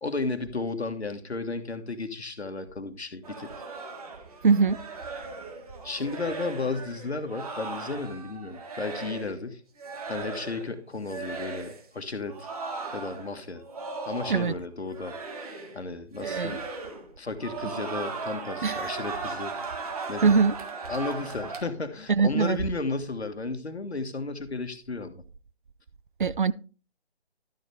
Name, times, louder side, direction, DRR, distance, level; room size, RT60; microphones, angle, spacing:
voice 1, 0.0-3.5 5.8-9.6 10.1-12.5 12.9-13.6 14.0-15.2 15.7-16.6 17.2-19.6 20.1-20.4 20.9-25.2, left 3 dB, 75° left, 1.6 m, -33 dB
sound 1, 3.2-9.4 9.8-10.7 11.0-11.8 12.3-14.6 14.9-15.8 16.1-17.1 17.4-21.6, right 4 dB, 35° right, 1.8 m, -37 dB
voice 2, 4.4-4.8 14.3-14.5 16.2-16.6 18.6-18.9 20.2-20.5 22.1-22.6 26.2-26.5, right 5 dB, 50° right, 0.5 m, -22 dB
12.0 x 7.0 x 3.4 m
figure-of-eight pair, 150°, 32 cm